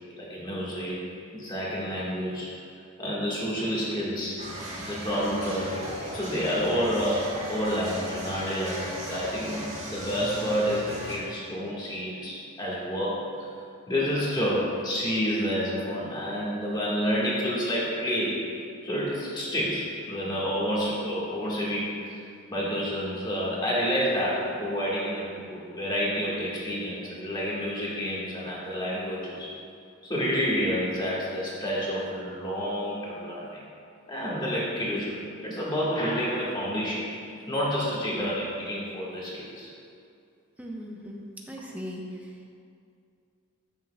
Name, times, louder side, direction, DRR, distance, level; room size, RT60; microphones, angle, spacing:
voice 1, 0.2-1.1 1.3-2.5 3.0-4.4 4.8-13.2 13.9-18.5 18.8-22.2 22.5-29.5 30.0-33.6 34.1-37.2 37.5-39.7, equal, 20° left, -6 dB, 1.5 m, -29 dB
sound 1, 4.4-11.2, equal, 30° right, 1.8 m, -37 dB
voice 2, 40.6-41.2 41.5-42.5, equal, 5° right, -2 dB, 0.8 m, -39 dB
13.5 x 6.0 x 2.2 m, 2.4 s
head